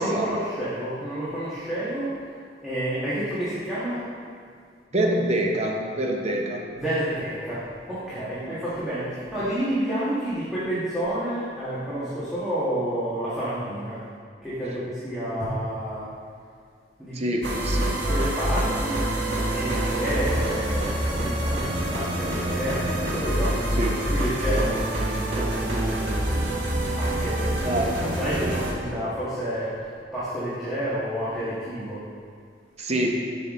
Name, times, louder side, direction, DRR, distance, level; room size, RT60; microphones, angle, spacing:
voice 1, 0.0-2.2 2.6-4.0 6.7-14.0 14.4-16.1 17.0-17.2 17.8-19.1 19.5-26.4 26.8-27.8 28.2-32.0, right 1 dB, 5° right, -13 dB, 1.5 m, -30 dB
voice 2, 4.9-6.6 8.4-8.6 17.1-18.0 23.8-24.0 27.6-28.0 32.8-33.2, right 1 dB, 40° right, 1 dB, 0.8 m, -26 dB
sound 1, 17.4-28.7, right 1 dB, 85° right, 1.4 m, -26 dB
7.7 x 5.9 x 3.6 m, 2.1 s
head